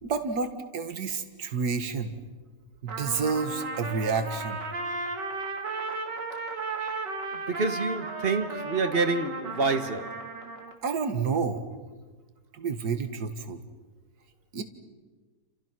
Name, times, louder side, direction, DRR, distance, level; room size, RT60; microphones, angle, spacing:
voice 1, 0.0-2.1 2.8-4.6 6.8-7.0 10.8-11.6 12.5-13.6 14.5-14.6, right 5 dB, 65° right, 2.2 m, -30 dB
Trumpet, 2.9-10.8, right 3 dB, 85° right, 3.0 m, -35 dB
voice 2, 7.3-10.3, right 4 dB, 35° right, 1.4 m, -28 dB
30.0 x 28.0 x 6.1 m
omnidirectional pair, 1.8 m